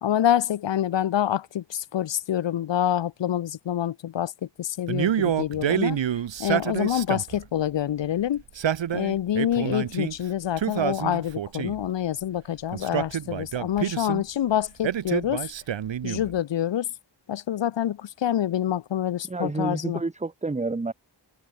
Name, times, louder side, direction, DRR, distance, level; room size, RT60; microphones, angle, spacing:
voice 1, 0.0-4.3 4.6-6.0 6.4-8.4 8.9-15.5 16.0-16.9 17.3-20.0, left 11 dB, 80° left, 0.9 m, -26 dB
Male speech man speaking, 4.9-7.4 8.4-10.1 10.6-11.9 12.7-14.2 14.8-16.3, right 9 dB, 85° right, 1.3 m, -27 dB
voice 2, 19.3-20.9, right 3 dB, 15° right, 1.1 m, -29 dB
wide cardioid pair, 140°, 43 cm